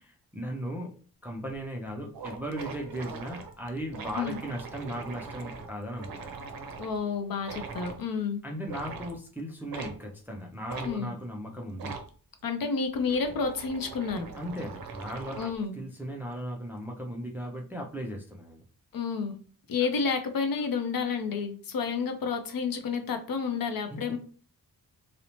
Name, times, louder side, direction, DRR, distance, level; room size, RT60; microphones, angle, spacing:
voice 1, 0.3-6.4 8.4-12.0 13.1-13.2 14.4-18.6 23.9-24.2, equal, 5° right, 1 dB, 0.3 m, -37 dB
sound 1, 1.5-1.6 1.9-2.0 2.1-7.0 7.4-8.0 8.6-9.2 9.7-10.0 10.7-10.9 11.7-12.1 12.9-15.6, right 5 dB, 65° right, 0.5 m, -41 dB
voice 2, 6.8-8.4 10.8-11.1 12.4-14.3 15.4-15.8 18.9-19.4 19.7-24.2, left 5 dB, 60° left, 6 dB, 0.5 m, -30 dB
2.7 x 2.1 x 2.8 m, 0.41 s
wide cardioid pair, 135°, 39 cm